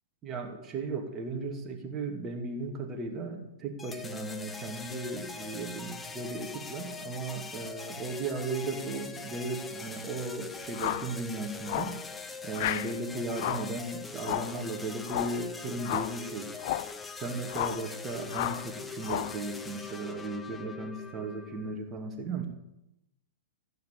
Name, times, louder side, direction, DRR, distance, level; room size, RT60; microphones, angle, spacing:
voice 1, 0.2-11.9 12.4-16.5 17.2-22.5, right 3 dB, 25° right, 3 dB, 2.4 m, -36 dB
sound 1, 3.8-21.7, left 4 dB, 10° left, 1.1 m, -42 dB
sound 2, 10.7-11.1 11.7-12.0 12.5-12.9 13.3-13.7 14.2-14.6 15.1-15.4 15.8-16.2 16.6-16.9 17.5-17.9 18.3-18.7 19.0-19.4, left 13 dB, 45° left, 0.7 m, -33 dB
15.0 x 9.4 x 8.5 m, 0.88 s
figure-of-eight pair, 105°, 0 cm